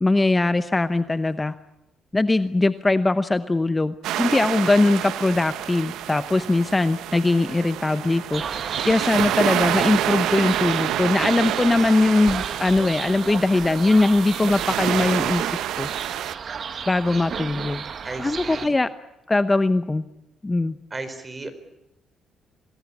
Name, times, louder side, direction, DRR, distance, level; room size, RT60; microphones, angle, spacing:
voice 1, 0.0-1.6 2.1-15.9 16.9-17.8 18.2-18.9 19.3-20.0 20.4-20.8, left 2 dB, 20° left, 11 dB, 0.9 m, -21 dB
sound 1, 4.0-16.3, right 12 dB, 90° right, 0.9 m, -28 dB
sound 2, 8.3-18.7, right 6 dB, 50° right, 1.6 m, -34 dB
voice 2, 18.0-18.8 20.9-21.5, right 3 dB, 25° right, 11 dB, 4.3 m, -35 dB
26.5 x 20.5 x 8.5 m, 0.92 s
cardioid pair, 90°, 0 cm